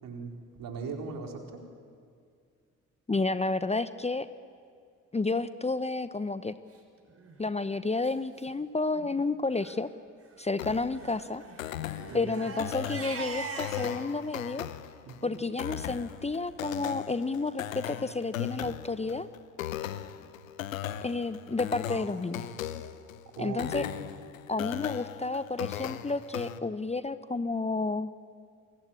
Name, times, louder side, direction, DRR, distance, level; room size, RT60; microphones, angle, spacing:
voice 1, 0.0-1.6 12.1-12.5 15.1-15.4 23.3-24.0, right 4 dB, 55° right, 2 dB, 4.4 m, -39 dB
voice 2, 3.1-4.3 5.1-6.5 7.4-9.9 10.4-11.4 12.1-14.7 15.2-19.3 21.0-22.5 23.4-23.8 24.5-28.1, left 3 dB, 15° left, 14 dB, 1.0 m, -31 dB
Crying sobbing, 7.1-7.4 8.0-8.1 8.4-8.5 8.8-9.1 9.5-9.8 10.9-14.0, right 3 dB, 35° right, 5.9 m, -41 dB
sound 1, 10.6-26.6, left 11 dB, 80° left, 0.9 m, -38 dB
27.5 x 23.5 x 8.8 m, 2.2 s
figure-of-eight pair, 45°, 39 cm